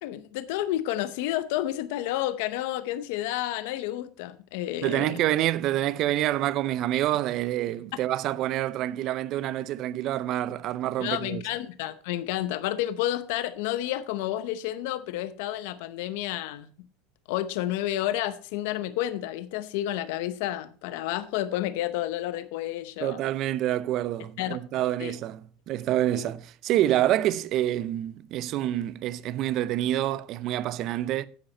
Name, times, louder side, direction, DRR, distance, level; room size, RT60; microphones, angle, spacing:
voice 1, 0.0-5.2 11.0-16.7 17.3-23.2 24.4-24.6 25.0-25.1 26.1-26.3, left 13 dB, 75° left, 0.7 m, -30 dB
voice 2, 4.8-11.4 23.0-31.3, right 13 dB, 45° right, 0.5 m, -27 dB
10.5 x 7.9 x 4.3 m
supercardioid pair, 140°, 0 cm